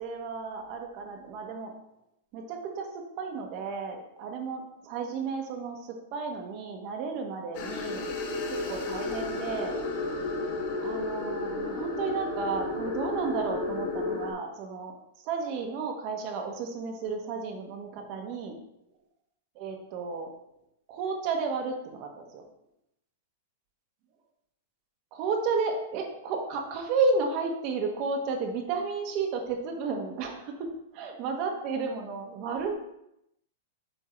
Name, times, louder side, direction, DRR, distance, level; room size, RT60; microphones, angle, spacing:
voice 1, 0.0-1.7 2.3-8.1 8.5-9.8 10.8-18.6 19.5-20.3 20.9-22.4 25.1-32.7, right 4 dB, 35° right, 3 dB, 1.1 m, -32 dB
sound 1, 7.5-14.3, left 3 dB, 40° left, 1.1 m, -32 dB
7.9 x 3.6 x 4.4 m, 0.81 s
supercardioid pair, 170°, 0 cm